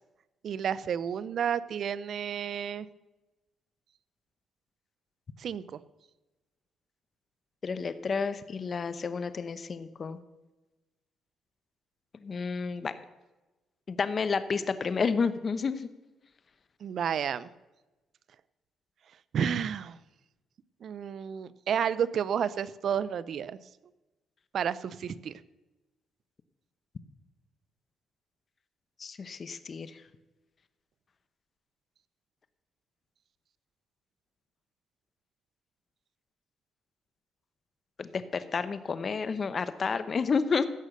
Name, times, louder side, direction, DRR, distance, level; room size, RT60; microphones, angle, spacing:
voice 1, 0.4-2.9 5.4-5.8 16.8-17.5 19.3-20.0 20.8-23.6 24.5-25.3, right 8 dB, 60° right, 17 dB, 0.5 m, -31 dB
voice 2, 7.6-10.2 12.2-12.9 13.9-15.9 29.0-29.9 38.0-40.7, left 5 dB, 40° left, 13 dB, 0.9 m, -30 dB
16.0 x 6.6 x 6.6 m, 1.1 s
cardioid pair, 90°, 0 cm